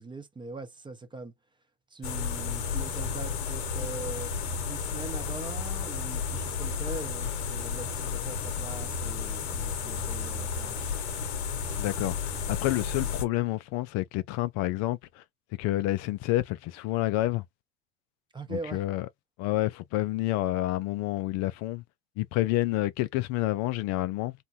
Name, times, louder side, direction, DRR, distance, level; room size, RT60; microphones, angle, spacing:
voice 1, 0.0-1.3 1.9-4.3 4.6-11.0 18.3-18.8, right 3 dB, 15° right, 0.7 m, -41 dB
sound 1, 2.0-13.2, left 6 dB, 80° left, 0.9 m, -32 dB
voice 2, 11.8-15.2 15.6-17.4 18.5-19.1 19.4-21.8 22.2-24.3, left 16 dB, 55° left, 0.4 m, -29 dB
2.6 x 2.2 x 2.7 m
hypercardioid pair, 85°, 32 cm